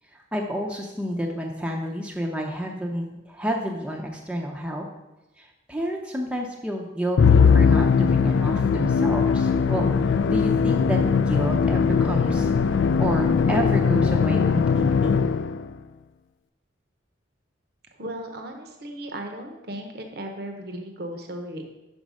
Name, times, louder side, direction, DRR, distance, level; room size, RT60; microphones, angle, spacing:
voice 1, 0.3-4.9 5.4-15.2, equal, 5° right, 0 dB, 0.6 m, -30 dB
Musical instrument, 7.2-15.7, left 6 dB, 75° left, 0.3 m, -20 dB
voice 2, 18.0-21.6, right 1 dB, 55° right, 4 dB, 0.9 m, -36 dB
5.9 x 5.3 x 6.2 m, 1.0 s
head